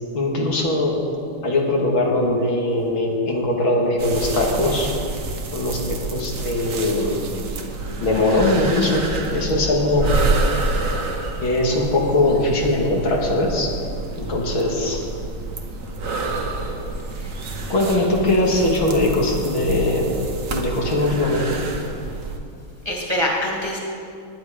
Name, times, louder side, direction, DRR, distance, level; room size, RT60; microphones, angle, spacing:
voice 1, 0.1-1.0 1.4-4.9 5.5-7.2 8.0-10.1 11.4-13.7 14.2-15.0 17.7-20.1 20.5-21.6, left 2 dB, 70° left, -1 dB, 2.7 m, -21 dB
sound 1, 4.0-22.4, right 3 dB, 45° right, 1.3 m, -28 dB
voice 2, 17.7-18.0 22.8-23.8, equal, 15° right, -2 dB, 1.9 m, -25 dB
19.5 x 10.5 x 5.0 m, 2.5 s
omnidirectional pair, 2.3 m